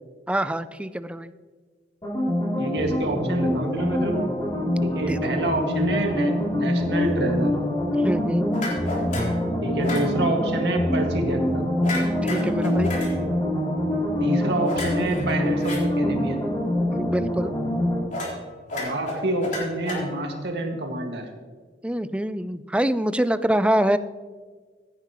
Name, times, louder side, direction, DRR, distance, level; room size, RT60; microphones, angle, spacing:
voice 1, 0.3-1.3 5.1-5.3 8.0-8.5 12.2-12.9 16.9-17.5 21.8-24.0, right 1 dB, 5° right, 13 dB, 0.4 m, -25 dB
sound 1, 2.0-18.0, left 1 dB, 25° left, 3.3 m, -25 dB
voice 2, 2.6-4.3 4.8-7.5 9.6-11.7 14.2-16.4 18.7-21.3, right 1 dB, 70° right, 2 dB, 1.9 m, -27 dB
sound 2, 8.5-9.4 9.8-10.1 11.8-13.1 14.6-15.8 18.1-18.4 18.7-20.4, left 2 dB, 45° left, 3.6 m, -32 dB
15.5 x 9.6 x 3.0 m, 1.5 s
head